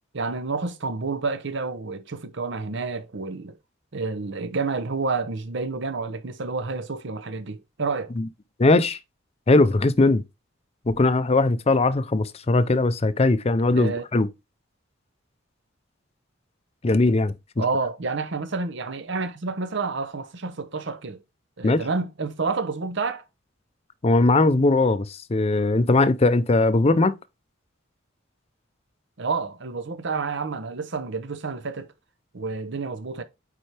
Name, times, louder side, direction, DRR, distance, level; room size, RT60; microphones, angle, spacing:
voice 1, 0.1-3.5 3.9-8.1 13.7-14.1 17.6-21.2 21.6-23.2 29.2-31.9 32.3-33.2, right 4 dB, 60° right, 0.8 m, -29 dB
voice 2, 8.6-9.0 9.5-10.2 10.9-14.3 16.8-17.3 21.6-21.8 24.0-27.1, left 2 dB, 30° left, 0.5 m, -20 dB
8.7 x 4.5 x 3.3 m
head